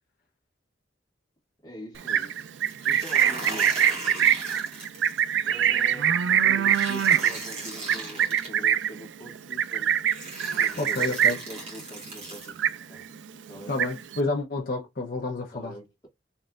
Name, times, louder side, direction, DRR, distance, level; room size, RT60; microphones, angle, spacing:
voice 1, 1.6-2.3 2.8-3.8 5.4-9.9 10.5-12.6 12.9-13.0 13.5-13.7 15.5-16.1, equal, 20° left, 1.7 m, -43 dB
Livestock farm animals working animals, 2.0-11.6 11.9-12.2 12.5-13.2 13.5-14.2, right 9 dB, 85° right, 0.4 m, -24 dB
sound 1, 2.7-5.2 6.7-8.5 9.5-9.6 10.1-12.5, right 2 dB, 35° right, 2.0 m, -38 dB
voice 2, 10.8-11.4 13.7-15.8, left 2 dB, 55° left, 0.9 m, -29 dB
4.2 x 3.3 x 2.5 m
head